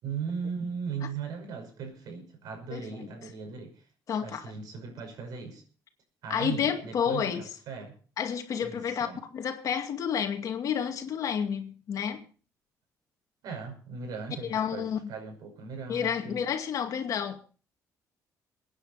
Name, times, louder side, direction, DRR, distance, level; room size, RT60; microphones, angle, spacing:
voice 1, 0.0-3.9 4.2-5.6 6.2-8.0 8.6-9.2 13.4-16.4, right 5 dB, 70° right, 5.6 m, -38 dB
voice 2, 2.7-3.1 4.1-4.5 6.3-7.4 8.2-12.3 14.5-15.1 15.9-17.4, left 8 dB, 55° left, 2.3 m, -30 dB
23.5 x 9.8 x 4.2 m
cardioid pair, 125°, 7 cm